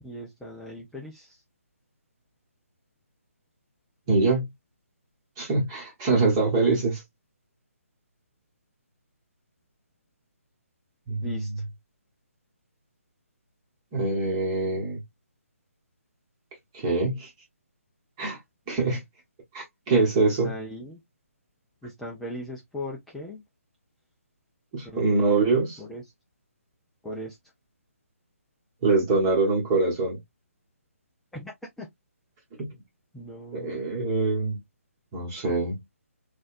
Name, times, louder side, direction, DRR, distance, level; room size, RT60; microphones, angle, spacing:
voice 1, 0.0-1.4 11.2-11.5 20.4-21.0 21.8-23.4 24.8-25.5 25.8-26.0 27.0-27.4 31.3-31.9 33.1-33.9, left 1 dB, 5° left, 0.4 m, -38 dB
voice 2, 4.1-4.4 5.4-7.0 11.1-11.6 13.9-15.0 16.7-17.3 18.2-18.4 18.7-19.0 19.5-20.5 24.7-25.8 28.8-30.2 32.6-32.7 33.5-34.6 35.1-35.8, right 3 dB, 20° right, 1.3 m, -24 dB
4.0 x 2.4 x 2.5 m
figure-of-eight pair, 150°, 8 cm